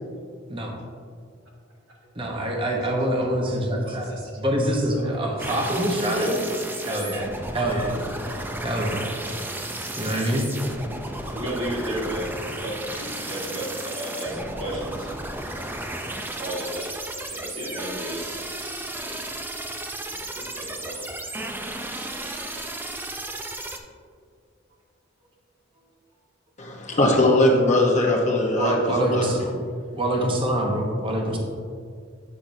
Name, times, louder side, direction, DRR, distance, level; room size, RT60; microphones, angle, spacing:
voice 1, 2.1-6.5 6.8-8.0 8.6-9.0 10.0-10.5 28.6-29.5 29.9-31.4, right 1 dB, 25° right, 0 dB, 0.9 m, -25 dB
voice 2, 2.7-3.4 3.8-4.7 5.0-5.6 6.1-6.5 6.8-7.4 8.2-8.6 9.7-10.0 11.3-15.1 16.4-17.0 17.3-18.4 19.0-19.2 20.3-21.0 29.2-29.4 30.3-30.4 31.3-31.4, equal, 70° right, -3 dB, 1.6 m, -34 dB
sound 1, 5.4-23.8, right 1 dB, 10° right, 0.4 m, -34 dB
voice 3, 26.6-29.3, left 1 dB, 35° left, 0 dB, 0.9 m, -20 dB
8.6 x 5.8 x 2.6 m, 2.1 s
head